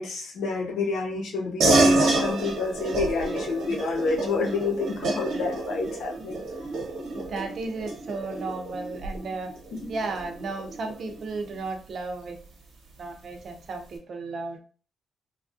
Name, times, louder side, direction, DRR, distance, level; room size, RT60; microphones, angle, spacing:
voice 1, 0.0-6.4, left 3 dB, 80° left, 1 dB, 0.7 m, -29 dB
sound 1, 1.6-11.5, right 2 dB, 85° right, 0.9 m, -28 dB
voice 2, 7.1-9.5 9.9-12.4 13.0-14.6, right 3 dB, 45° right, 5 dB, 0.5 m, -34 dB
3.2 x 2.3 x 2.5 m, 0.40 s
wide cardioid pair, 160°, 0 cm